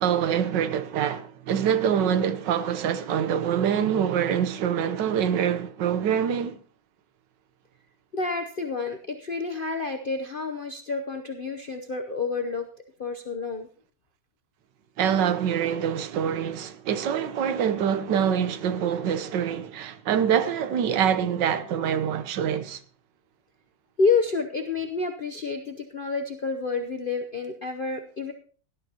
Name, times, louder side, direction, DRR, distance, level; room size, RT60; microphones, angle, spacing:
voice 1, 0.0-6.6 15.0-22.8, right 8 dB, 85° right, 1.5 m, -25 dB
voice 2, 8.1-12.7 13.0-13.7 24.0-28.3, left 4 dB, 45° left, 0.7 m, -29 dB
17.5 x 12.0 x 2.9 m
omnidirectional pair, 1.9 m